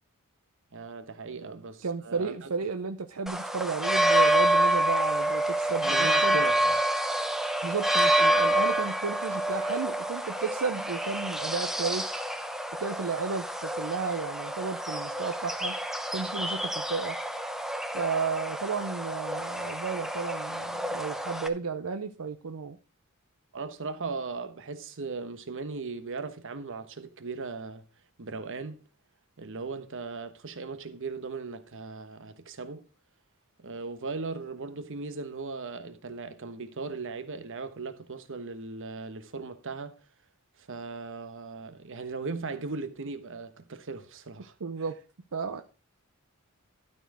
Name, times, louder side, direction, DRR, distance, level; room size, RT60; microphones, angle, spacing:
voice 1, 0.7-2.5 5.8-6.8 23.5-27.8 28.2-28.8 29.4-32.9 33.6-39.9 40.7-44.5, right 4 dB, 60° right, 1.1 m, -38 dB
voice 2, 1.8-6.4 7.6-12.2 12.8-15.7 16.1-17.2 17.9-22.8 44.6-45.0 45.3-45.6, right 5 dB, 80° right, 0.7 m, -33 dB
sound 1, 3.3-21.5, right 1 dB, ahead, 0.7 m, -28 dB
12.5 x 4.5 x 6.0 m
head